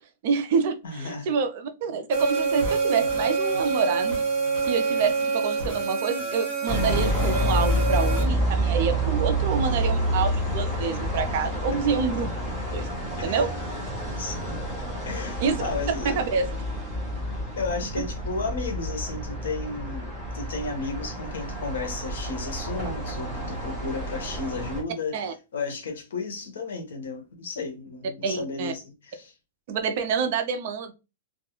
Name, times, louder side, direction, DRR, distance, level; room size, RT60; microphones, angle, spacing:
voice 1, 0.2-4.2 4.7-12.3 12.7-12.9 13.2-13.5 15.4-15.6 16.0-16.5 25.1-25.3 28.2-28.7 29.7-30.9, right 5 dB, 40° right, 0.4 m, -27 dB
voice 2, 0.8-1.3 13.2-13.5 14.2-14.6 15.1-16.2 17.6-25.2 25.5-29.3, left 3 dB, 80° left, 0.8 m, -33 dB
sound 1, 2.1-8.2, right 4 dB, 20° right, 1.0 m, -26 dB
sound 2, 6.7-24.8, right 1 dB, 5° left, 0.7 m, -28 dB
2.3 x 2.0 x 2.9 m
supercardioid pair, 175°, 0 cm